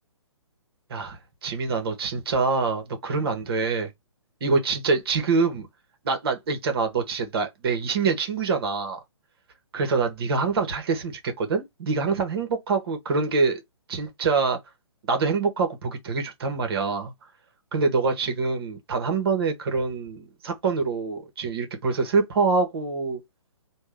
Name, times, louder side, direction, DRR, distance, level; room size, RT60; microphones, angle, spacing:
voice 1, 0.9-3.9 4.4-5.7 6.0-9.0 9.7-13.6 13.9-14.6 15.1-17.1 17.7-23.2, right 4 dB, 50° right, 1.4 m, -25 dB
3.5 x 2.4 x 3.4 m
figure-of-eight pair, 135°, 17 cm